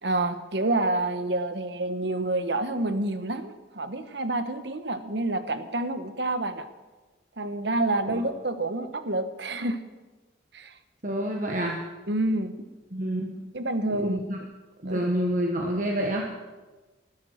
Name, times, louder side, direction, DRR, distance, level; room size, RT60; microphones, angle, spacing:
voice 1, 0.0-6.7 7.4-9.8 10.5-10.7 12.1-12.5 13.5-14.2 14.8-15.0, right 2 dB, 60° right, 10 dB, 1.2 m, -28 dB
voice 2, 11.0-11.8 12.9-13.4 13.9-14.4 14.8-16.3, equal, 40° right, 0 dB, 1.4 m, -28 dB
15.0 x 13.0 x 6.4 m, 1.2 s
head